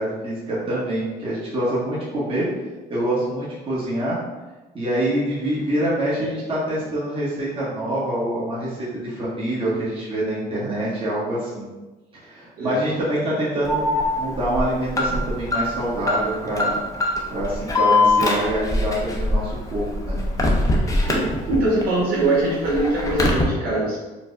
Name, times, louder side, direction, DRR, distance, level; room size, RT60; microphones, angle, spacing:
voice 1, 0.0-2.4 2.9-4.2 4.7-11.7 12.2-13.9 14.2-16.8 17.3-20.2, right 1 dB, 35° right, -8 dB, 1.2 m, -25 dB
Alarm, 13.7-21.8 22.2-23.4, left 2 dB, 20° left, 0.6 m, -22 dB
voice 2, 20.4-24.0, right 2 dB, 65° right, -6 dB, 1.2 m, -23 dB
4.4 x 2.1 x 2.5 m, 1.2 s
cardioid pair, 110°, 17 cm